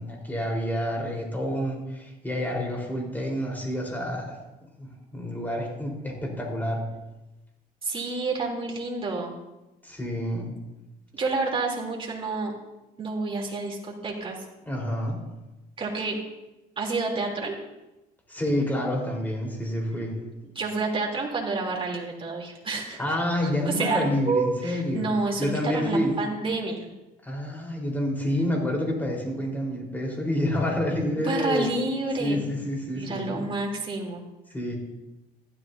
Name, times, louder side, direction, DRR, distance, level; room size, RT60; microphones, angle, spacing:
voice 1, 0.0-4.3 4.8-6.8 9.8-10.5 14.7-15.2 18.3-20.1 23.0-25.1 25.4-26.1 27.2-31.7 32.2-33.5 34.5-34.7, left 1 dB, 10° left, -1 dB, 4.2 m, -28 dB
voice 2, 7.8-9.3 11.1-12.5 13.0-14.3 15.8-16.2 16.8-17.5 20.4-23.0 23.6-26.9 31.2-32.4 32.9-34.2, right 3 dB, 30° right, -1 dB, 3.3 m, -29 dB
15.0 x 13.0 x 2.8 m, 1.0 s
cardioid pair, 110°, 17 cm